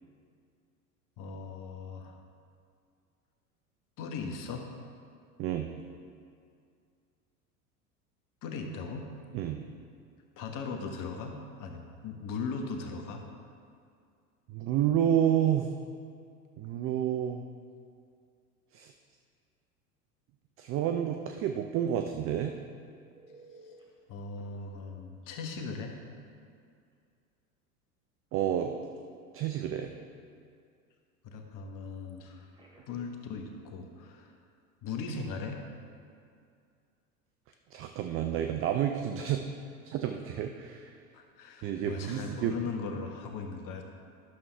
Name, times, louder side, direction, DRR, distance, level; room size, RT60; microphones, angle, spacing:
voice 1, 1.2-2.2 4.0-4.7 8.4-9.1 10.4-13.2 24.1-26.0 31.2-32.5 32.9-34.3 34.8-35.6 41.1-43.8, left 4 dB, 45° left, 3 dB, 1.1 m, -38 dB
voice 2, 9.3-9.6 14.5-15.7 16.6-17.4 18.7-18.9 20.6-22.6 28.3-28.7 29.3-29.9 37.7-39.4 39.8-40.9 41.6-42.6, right 10 dB, 30° right, 6 dB, 0.4 m, -29 dB
Telephone, 23.1-23.8 24.4-24.5 26.2-26.4 26.8-26.9 32.2-33.1 40.2-40.4, right 2 dB, 10° right, 2.4 m, -56 dB
11.5 x 7.0 x 3.3 m, 2.3 s
hypercardioid pair, 80°, 45 cm